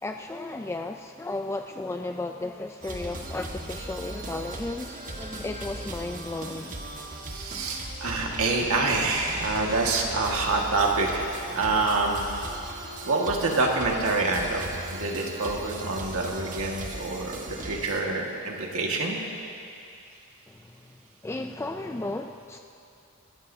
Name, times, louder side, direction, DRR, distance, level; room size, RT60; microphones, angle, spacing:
voice 1, 0.0-6.8 20.5-21.0 21.2-22.6, left 2 dB, 10° left, 5 dB, 0.3 m, -34 dB
sound 1, 2.8-18.0, right 1 dB, 40° right, 1.4 m, -38 dB
voice 2, 7.2-12.2 13.0-14.6 14.9-19.2, right 3 dB, 70° right, 0 dB, 1.8 m, -26 dB
25.5 x 14.5 x 2.8 m, 2.6 s
head